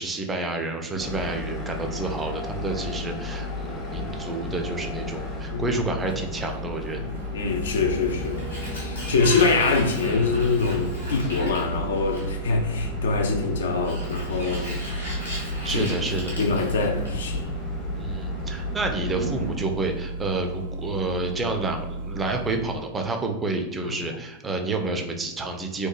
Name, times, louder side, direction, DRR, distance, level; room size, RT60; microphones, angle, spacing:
voice 1, 0.0-7.1 14.6-14.8 15.6-16.4 18.0-25.9, right 3 dB, 15° right, 0.3 m, -29 dB
sound 1, 1.0-19.6, left 2 dB, 30° left, 0.7 m, -34 dB
Engine starting, 5.9-22.8, right 1 dB, 75° right, 0.5 m, -35 dB
voice 2, 7.0-14.7 15.7-15.8 16.4-17.5 23.9-24.0, left 4 dB, 65° left, 0.4 m, -25 dB
Sliding door, 7.9-12.5 13.7-17.4, equal, 80° left, 0.8 m, -36 dB
2.8 x 2.2 x 2.3 m
figure-of-eight pair, 90°, 0 cm